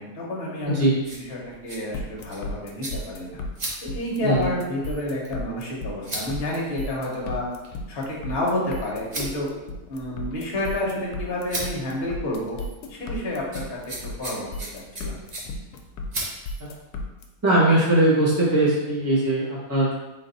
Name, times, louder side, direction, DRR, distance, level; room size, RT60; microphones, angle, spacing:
voice 1, 0.0-3.4 3.8-7.5 7.9-9.5 9.9-12.6 12.9-15.1, left 1 dB, 40° left, -4 dB, 1.1 m, -30 dB
sound 1, 0.6-16.8, right 1 dB, 50° right, 0.5 m, -40 dB
sound 2, 1.9-17.2, left 2 dB, 75° left, 1.1 m, -34 dB
voice 2, 17.4-19.9, right 1 dB, 15° right, -7 dB, 0.7 m, -20 dB
3.8 x 2.5 x 4.0 m, 1.1 s
omnidirectional pair, 1.8 m